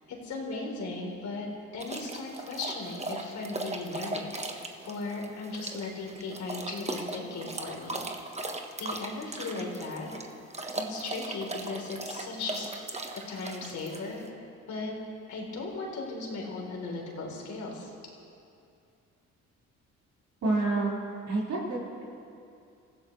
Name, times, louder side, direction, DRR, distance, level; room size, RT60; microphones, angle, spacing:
voice 1, 0.1-1.5 1.7-8.0 8.8-10.1 10.7-12.7 13.1-14.2 14.7-14.9 15.3-17.9, left 3 dB, 70° left, -1 dB, 3.9 m, -37 dB
sound 1, 1.8-14.3, right 2 dB, 20° right, 1.3 m, -38 dB
voice 2, 20.4-21.0 21.3-22.0, right 2 dB, 70° right, -7 dB, 5.0 m, -28 dB
26.0 x 15.0 x 3.3 m, 2.5 s
cardioid pair, 90°, 30 cm